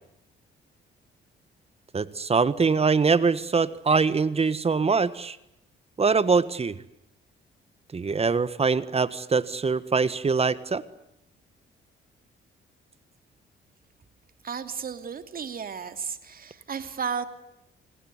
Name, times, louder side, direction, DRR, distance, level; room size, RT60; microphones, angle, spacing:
voice 1, 1.9-5.4 6.0-6.8 7.9-10.8, right 4 dB, 30° right, 16 dB, 1.5 m, -23 dB
voice 2, 14.4-17.3, right 6 dB, 45° right, 10 dB, 2.8 m, -33 dB
29.0 x 20.0 x 9.6 m, 0.83 s
cardioid pair, 90°, 20 cm